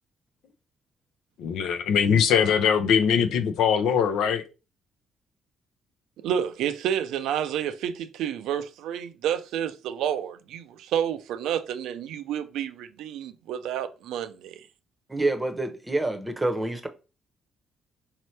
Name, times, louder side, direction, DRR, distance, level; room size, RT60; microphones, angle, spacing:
voice 1, 1.4-4.4, left 7 dB, 85° left, 0.5 m, -22 dB
voice 2, 6.2-14.7, right 9 dB, 85° right, 0.4 m, -30 dB
voice 3, 15.1-16.9, right 2 dB, 15° right, 0.8 m, -27 dB
4.2 x 2.8 x 3.2 m
cardioid pair, 90°, 0 cm